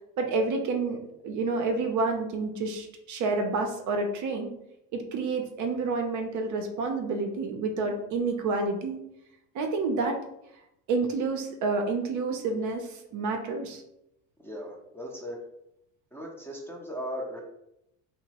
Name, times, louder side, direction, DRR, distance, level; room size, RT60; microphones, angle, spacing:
voice 1, 0.2-1.0 1.2-4.5 4.9-9.0 9.5-10.2 10.9-13.8, right 3 dB, 50° right, 4 dB, 0.5 m, -29 dB
voice 2, 14.4-15.4 16.1-17.4, equal, 5° left, -4 dB, 0.5 m, -37 dB
2.8 x 2.0 x 2.8 m, 0.83 s
supercardioid pair, 90°, 38 cm